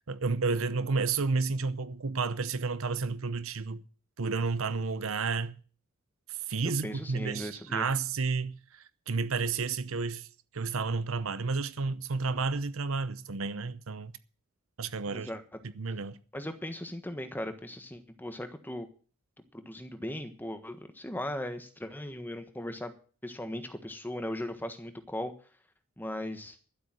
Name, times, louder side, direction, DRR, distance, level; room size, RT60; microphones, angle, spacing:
voice 1, 0.1-3.8 4.2-5.6 6.3-10.3 10.5-14.1 14.8-15.3 15.8-16.2, right 4 dB, 70° right, 0.8 m, -31 dB
voice 2, 6.6-7.9 15.1-15.4 16.3-18.9 19.5-22.9 23.2-25.3 26.0-26.6, left 1 dB, 10° left, 1.3 m, -38 dB
12.5 x 8.1 x 7.7 m
head